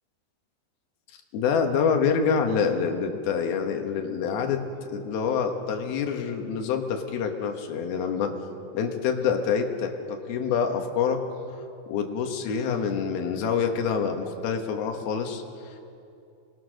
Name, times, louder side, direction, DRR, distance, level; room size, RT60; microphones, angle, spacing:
voice 1, 1.3-8.3 8.7-11.2 11.9-15.8, left 6 dB, 85° left, 4 dB, 3.4 m, -26 dB
29.0 x 20.5 x 6.5 m, 2.6 s
omnidirectional pair, 4.2 m